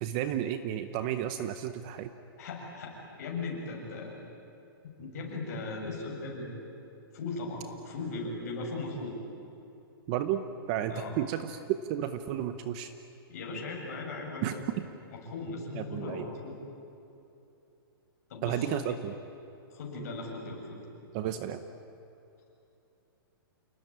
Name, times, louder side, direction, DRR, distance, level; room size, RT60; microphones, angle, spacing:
voice 1, 0.0-2.1 10.1-12.9 14.4-14.8 15.7-16.2 18.4-19.1 21.1-21.6, right 10 dB, 20° right, 10 dB, 0.7 m, -32 dB
voice 2, 2.4-4.1 5.0-6.5 7.1-9.2 10.9-11.1 13.3-14.5 15.1-16.6 18.3-18.8 19.7-20.8, left 3 dB, 40° left, 0 dB, 7.1 m, -38 dB
29.0 x 19.0 x 9.9 m, 2.9 s
hypercardioid pair, 180°, 12 cm